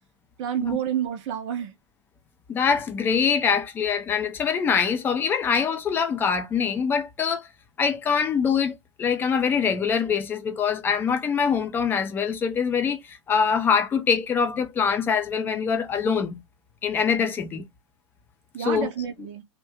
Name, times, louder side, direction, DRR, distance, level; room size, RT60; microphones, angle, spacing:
voice 1, 0.4-1.7 18.5-19.4, right 9 dB, 30° right, 0.6 m, -29 dB
voice 2, 2.5-7.5 7.8-16.4 16.8-17.6 18.6-18.9, left 6 dB, 15° left, 0.4 m, -24 dB
2.5 x 2.2 x 3.4 m
figure-of-eight pair, 105°, 16 cm